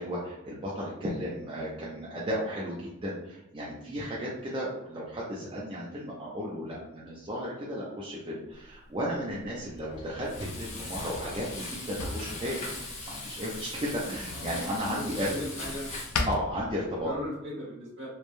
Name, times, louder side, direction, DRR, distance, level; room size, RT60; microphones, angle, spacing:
voice 1, 0.0-12.7 13.1-15.3 16.3-17.1, equal, 20° right, -6 dB, 0.4 m, -34 dB
Drawer open or close, 8.5-17.3, left 3 dB, 80° left, 0.4 m, -40 dB
Frying (food), 10.2-16.2, left 2 dB, 30° left, 0.5 m, -40 dB
voice 2, 14.9-15.9 17.0-18.1, left 1 dB, 55° right, -6 dB, 1.3 m, -37 dB
3.1 x 2.1 x 2.5 m, 0.90 s
head